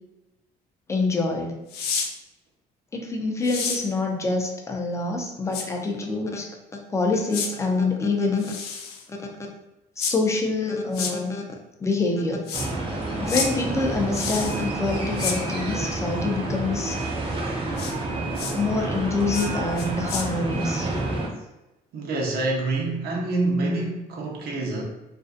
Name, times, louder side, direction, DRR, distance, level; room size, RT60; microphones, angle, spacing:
voice 1, 0.9-1.6 2.9-6.5 6.9-8.6 9.1-9.2 10.0-11.4 11.8-12.5 13.1-17.0 18.5-20.9, left 3 dB, 15° left, 1 dB, 0.5 m, -26 dB
sound 1, 1.7-2.1 3.4-3.8 5.5-5.6 7.3-7.5 8.4-9.0 10.0-10.1 10.9-11.1 12.5-12.7 13.3-13.5 14.1-14.6 15.2-15.4 17.8-17.9 18.3-18.5 19.3-19.5 19.8-20.2, left 6 dB, 70° left, 0.5 m, -29 dB
sound 2, 12.5-21.3, right 2 dB, 35° right, 0.7 m, -29 dB
voice 2, 21.9-24.8, right 2 dB, 70° right, 0 dB, 0.7 m, -26 dB
2.5 x 2.3 x 2.4 m, 0.97 s
cardioid pair, 110°, 17 cm